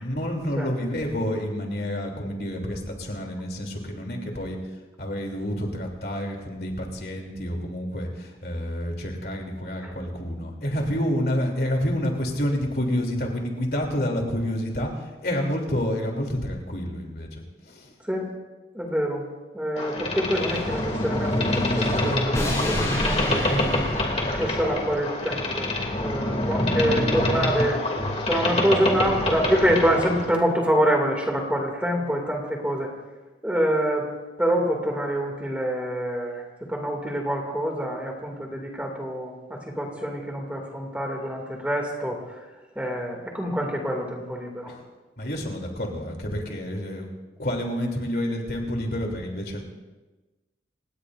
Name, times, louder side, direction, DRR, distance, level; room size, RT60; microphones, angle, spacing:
voice 1, 0.0-4.6 5.0-17.9 44.7-44.8 45.2-47.1 47.4-49.6, equal, 60° left, 1 dB, 3.1 m, -29 dB
voice 2, 18.7-19.2 19.5-23.8 24.3-25.7 26.0-27.8 28.3-32.9 33.4-34.1 34.4-36.4 36.7-42.2 42.8-44.7, equal, 10° right, 0 dB, 2.5 m, -26 dB
Boat Water vehicle, 19.8-30.3, left 1 dB, 35° left, 2.7 m, -26 dB
sound 1, 20.4-25.1, left 1 dB, 15° left, 4.7 m, -30 dB
29.5 x 17.5 x 2.6 m, 1.2 s
head